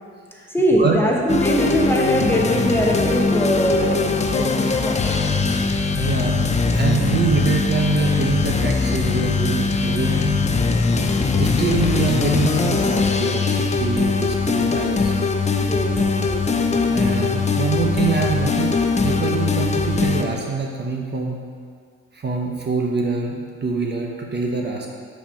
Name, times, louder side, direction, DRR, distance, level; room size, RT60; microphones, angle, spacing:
voice 1, 0.5-5.3 15.5-16.4, right 1 dB, 5° left, -2 dB, 0.9 m, -22 dB
sound 1, 1.3-20.2, left 4 dB, 25° left, 0.5 m, -21 dB
voice 2, 5.9-6.4 6.7-10.4 11.4-15.2 16.9-18.8 19.0-21.4 22.1-24.9, right 4 dB, 35° right, 0 dB, 0.9 m, -24 dB
5.6 x 4.5 x 5.7 m, 2.1 s
cardioid pair, 90°, 30 cm